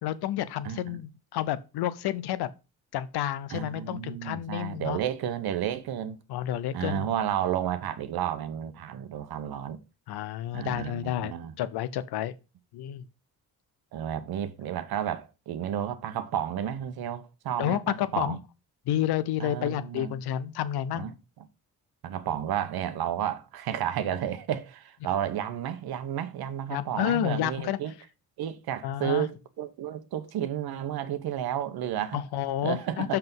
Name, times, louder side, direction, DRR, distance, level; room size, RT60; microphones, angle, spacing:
voice 1, 0.0-2.5 2.9-5.0 6.3-7.1 10.1-12.3 12.7-13.0 17.6-18.4 18.9-21.1 26.7-27.8 28.8-29.3 32.1-33.2, left 12 dB, 75° left, 0.8 m, -30 dB
voice 2, 0.6-1.0 3.5-6.2 6.7-9.8 10.5-11.5 13.9-18.4 19.4-20.2 20.9-21.1 22.0-27.9 28.4-32.2 32.6-33.2, right 10 dB, 70° right, 1.1 m, -32 dB
5.9 x 5.7 x 5.4 m
supercardioid pair, 60°, 39 cm